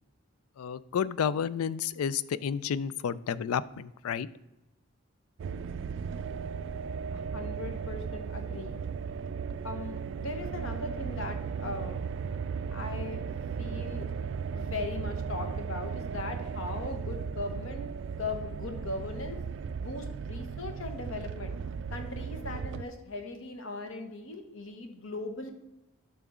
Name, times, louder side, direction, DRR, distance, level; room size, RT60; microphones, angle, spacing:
voice 1, 0.6-4.3, left 7 dB, 90° left, 18 dB, 0.4 m, -31 dB
sound 1, 5.4-22.8, right 6 dB, 60° right, 0.3 m, -36 dB
voice 2, 7.1-8.8 9.6-12.1 12.7-13.3 13.6-14.1 14.5-19.4 19.8-21.6 21.9-25.5, left 3 dB, 70° left, 6 dB, 1.1 m, -39 dB
11.0 x 5.8 x 3.7 m, 0.92 s
head